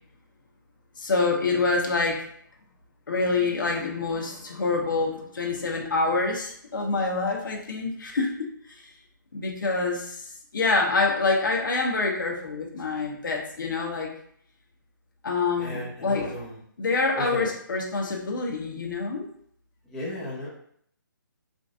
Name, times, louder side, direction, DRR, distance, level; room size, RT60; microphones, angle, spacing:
voice 1, 1.0-2.2 3.1-8.9 9.3-14.1 15.2-16.3 16.8-19.3, left 3 dB, 70° left, 0 dB, 1.1 m, -26 dB
voice 2, 15.6-16.5 17.2-17.5 19.9-20.5, left 1 dB, 5° left, -10 dB, 0.8 m, -34 dB
4.9 x 2.6 x 2.5 m, 0.66 s
hypercardioid pair, 165°, 11 cm